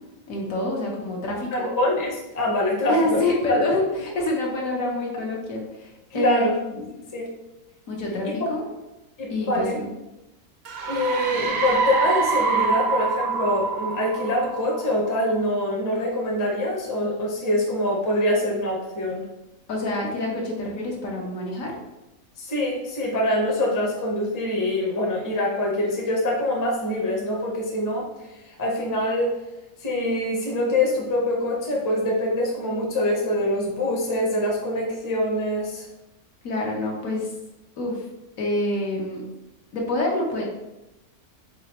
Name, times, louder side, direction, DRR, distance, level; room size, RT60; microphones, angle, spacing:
voice 1, 0.3-1.7 2.9-6.9 7.9-8.6 9.3-9.9 19.7-21.7 36.4-37.3 37.8-38.0 38.4-39.2 39.7-40.4, left 2 dB, 70° left, -2 dB, 1.3 m, -27 dB
voice 2, 1.5-3.2 3.5-3.6 6.1-6.5 7.1-7.3 9.2-9.8 10.9-19.3 22.4-28.1 28.5-29.4 29.8-35.9, left 1 dB, 20° left, -2 dB, 0.6 m, -24 dB
sound 1, 10.7-15.2, right 4 dB, 60° right, 0.6 m, -25 dB
4.2 x 4.0 x 2.9 m, 0.96 s
omnidirectional pair, 1.5 m